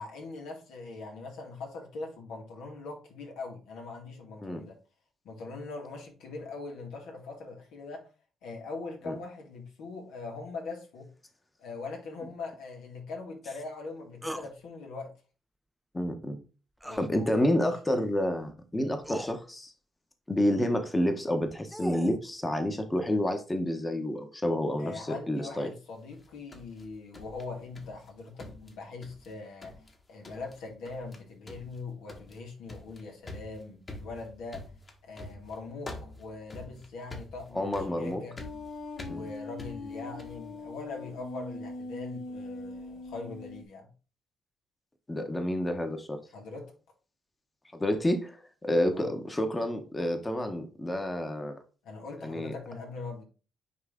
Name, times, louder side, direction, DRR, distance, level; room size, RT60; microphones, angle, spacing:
voice 1, 0.0-4.8 5.2-8.0 8.4-11.1 11.6-15.1 16.8-17.7 19.1-19.2 24.8-29.7 30.1-34.7 35.1-38.4 39.1-43.9 46.3-46.7 48.9-49.1 51.8-53.2, left 3 dB, 85° left, 2.1 m, -41 dB
sound 1, 14.2-14.5 16.8-17.1 18.4-18.5 19.0-19.3 21.3-22.2, equal, 5° right, 0.4 m, -37 dB
voice 2, 15.9-16.4 17.0-19.7 20.3-25.7 37.5-38.2 39.1-39.2 45.1-46.2 47.7-51.6 52.2-52.5, left 1 dB, 15° left, 1.1 m, -29 dB
sound 2, 26.1-28.1 28.4-29.3 29.6-30.0 30.2-30.6 30.9-31.2 31.5-40.5, left 2 dB, 35° left, 1.6 m, -46 dB
sound 3, 38.4-43.6, left 2 dB, 65° left, 1.0 m, -41 dB
9.5 x 3.2 x 3.7 m
cardioid pair, 90°, 0 cm